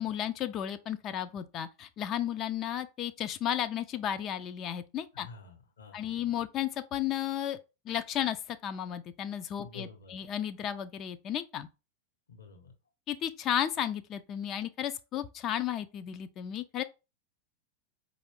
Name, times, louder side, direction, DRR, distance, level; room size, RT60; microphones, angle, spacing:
voice 1, 0.0-5.3 5.9-7.6 7.9-11.7 13.1-16.8, left 10 dB, 35° left, 0.3 m, -33 dB
voice 2, 5.1-6.3 9.6-10.1 12.3-12.7, left 4 dB, 65° left, 1.1 m, -49 dB
4.6 x 2.5 x 3.1 m
figure-of-eight pair, 90°, 0 cm